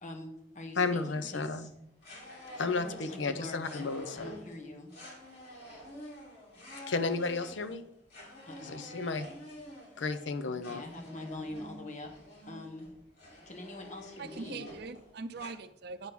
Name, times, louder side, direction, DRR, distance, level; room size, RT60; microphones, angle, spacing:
voice 1, 0.0-1.7 2.8-3.9 4.1-4.9 8.5-8.9 10.5-12.1 12.5-12.9 13.5-14.7, left 2 dB, 45° left, 3 dB, 1.3 m, -44 dB
sound 1, 0.7-1.6 2.0-15.5, equal, 60° left, 3.2 m, -49 dB
voice 2, 0.8-1.7 2.6-4.3 6.9-7.8 8.6-9.3 10.0-10.8, left 4 dB, 90° left, 10 dB, 0.7 m, -33 dB
voice 3, 14.2-16.1, right 4 dB, 60° right, 12 dB, 0.6 m, -42 dB
9.5 x 3.6 x 6.0 m, 0.75 s
head